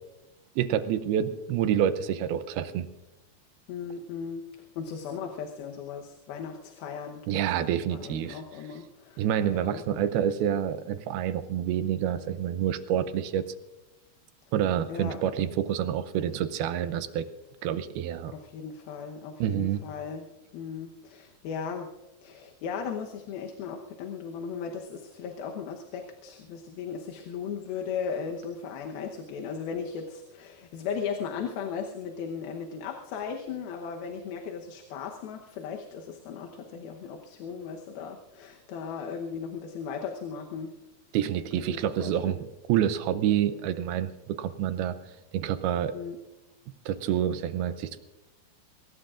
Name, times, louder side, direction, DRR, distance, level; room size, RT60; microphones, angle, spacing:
voice 1, 0.6-2.9 7.3-8.4 9.2-13.4 14.5-17.3 17.6-18.4 19.4-19.8 41.1-42.4 42.7-45.0 45.3-45.9 46.9-48.0, right 10 dB, 80° right, 11 dB, 2.6 m, -28 dB
voice 2, 3.7-4.4 4.8-7.3 7.7-10.3 14.9-15.2 18.3-20.3 20.5-21.9 22.2-40.7 41.6-42.4 45.9-46.2, left 6 dB, 75° left, 2 dB, 2.8 m, -37 dB
23.5 x 19.0 x 2.5 m, 1.0 s
omnidirectional pair, 4.5 m